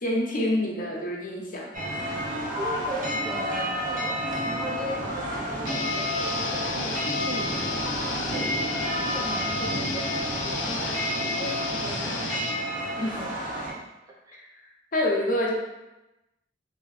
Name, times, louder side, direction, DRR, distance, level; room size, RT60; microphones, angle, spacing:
voice 1, 0.0-2.4 13.0-13.2 14.3-14.5 14.9-15.5, left 1 dB, 45° left, -2 dB, 0.7 m, -28 dB
sound 1, 1.7-13.7, equal, 45° right, 0.7 m, -30 dB
voice 2, 2.6-8.6 8.9-12.6 13.0-13.4 14.3-14.4, right 1 dB, 20° right, -2 dB, 0.3 m, -38 dB
sound 2, 5.7-12.5, left 4 dB, 90° left, 0.4 m, -33 dB
2.8 x 2.6 x 3.1 m, 0.99 s
head